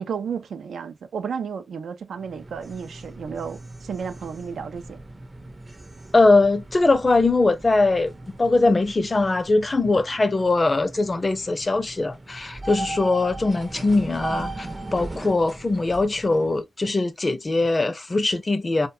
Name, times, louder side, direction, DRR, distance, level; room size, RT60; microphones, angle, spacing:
voice 1, 0.0-5.0, right 6 dB, 80° right, 0.4 m, -32 dB
sound 1, 2.2-16.6, right 2 dB, 30° right, 0.5 m, -38 dB
voice 2, 6.1-8.1 8.4-18.9, left 3 dB, 35° left, 0.5 m, -21 dB
2.4 x 2.1 x 2.6 m
cardioid pair, 50°, 0 cm